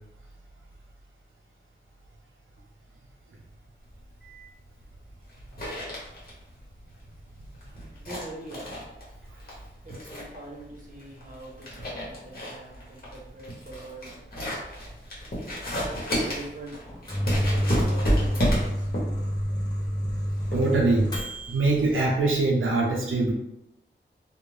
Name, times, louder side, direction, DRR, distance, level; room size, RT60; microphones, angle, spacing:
sound 1, 3.9-22.5, equal, 50° left, 1.0 m, -33 dB
voice 1, 7.6-8.7 9.8-14.2 16.3-18.9, right 2 dB, 40° right, -2 dB, 0.8 m, -44 dB
Microwave oven, 16.8-21.6, equal, 20° left, 0.8 m, -28 dB
voice 2, 20.5-21.1 21.5-23.3, right 3 dB, 85° right, -3 dB, 0.5 m, -23 dB
2.5 x 2.1 x 3.1 m, 0.85 s
wide cardioid pair, 90°, 20 cm